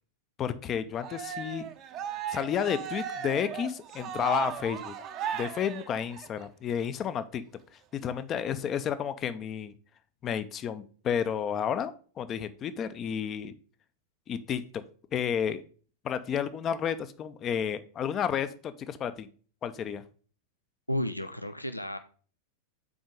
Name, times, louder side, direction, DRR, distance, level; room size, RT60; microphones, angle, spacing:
voice 1, 0.4-1.7 2.3-5.0 5.3-7.4 7.9-9.7 10.2-13.5 14.3-14.8 15.1-15.6 16.0-19.3 19.6-20.0, left 8 dB, 30° left, 12 dB, 0.5 m, -31 dB
Cheering, 1.0-6.4, right 8 dB, 35° right, 0.7 m, -36 dB
voice 2, 20.9-22.0, left 1 dB, 85° left, 10 dB, 0.4 m, -32 dB
6.1 x 4.4 x 5.2 m, 0.41 s
figure-of-eight pair, 90°, 0 cm